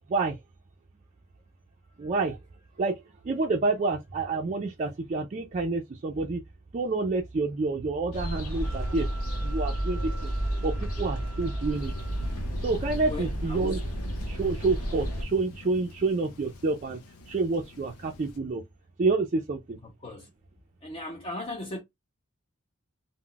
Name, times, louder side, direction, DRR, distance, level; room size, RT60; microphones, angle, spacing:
voice 1, 2.0-2.4 2.8-3.0 3.2-6.4 6.7-9.1 9.4-10.3 10.6-11.9 12.6-13.8 14.3-17.0 17.3-18.6 19.0-19.8, right 3 dB, 35° right, 0.3 m, -28 dB
sound 1, 8.1-15.2, right 1 dB, 65° left, 0.9 m, -31 dB
Wind instrument woodwind instrument, 8.6-12.4, right 3 dB, 5° left, 0.9 m, -48 dB
Thunder, 11.7-18.4, left 2 dB, 80° left, 0.5 m, -44 dB
voice 2, 13.1-13.8 19.8-20.3 20.8-21.8, left 2 dB, 25° left, 0.5 m, -37 dB
2.2 x 2.1 x 3.8 m
head